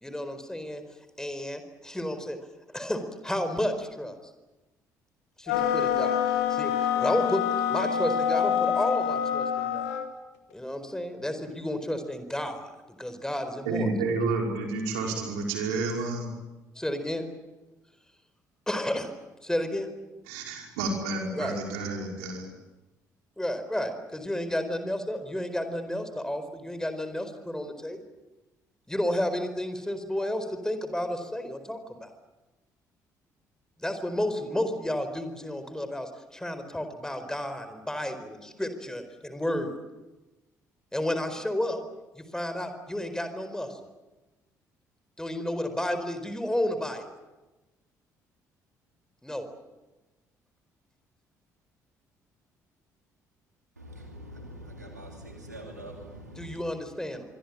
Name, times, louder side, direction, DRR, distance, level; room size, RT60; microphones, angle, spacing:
voice 1, 0.0-0.8 1.2-2.4 2.7-4.1 5.4-6.2 6.5-9.9 10.5-12.7 13.0-13.9 16.8-17.2 18.7-19.1 19.4-19.9 21.3-21.5 23.4-28.0 28.9-32.1 33.8-39.7 40.9-41.8 42.1-43.8 45.2-47.0 49.2-49.5 56.4-57.2, left 1 dB, 5° left, 9 dB, 4.5 m, -31 dB
sound 1, 5.5-10.1, left 9 dB, 70° left, 2.3 m, -26 dB
voice 2, 13.7-16.3 20.3-22.5, right 3 dB, 70° right, 1 dB, 5.3 m, -30 dB
voice 3, 53.8-56.7, equal, 85° right, 2 dB, 2.6 m, -44 dB
25.5 x 23.0 x 8.7 m, 1.1 s
figure-of-eight pair, 45°, 9 cm